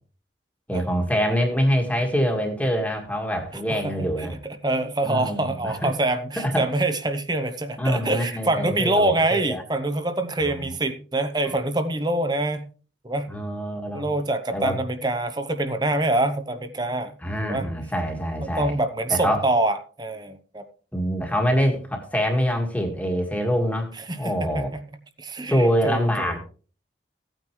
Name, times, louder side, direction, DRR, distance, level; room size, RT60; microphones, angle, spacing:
voice 1, 0.7-4.4 5.0-5.9 6.4-6.7 7.8-9.6 10.4-10.7 13.3-14.1 14.5-14.8 17.2-18.7 19.1-19.4 20.9-24.7 25.5-26.4, equal, 10° left, 2 dB, 1.7 m, -25 dB
voice 2, 3.7-12.7 13.0-13.3 13.9-17.2 17.4-17.7 18.6-20.7 24.0-24.8 25.2-26.3, right 2 dB, 20° right, 9 dB, 0.9 m, -25 dB
16.0 x 9.0 x 3.1 m, 0.39 s
head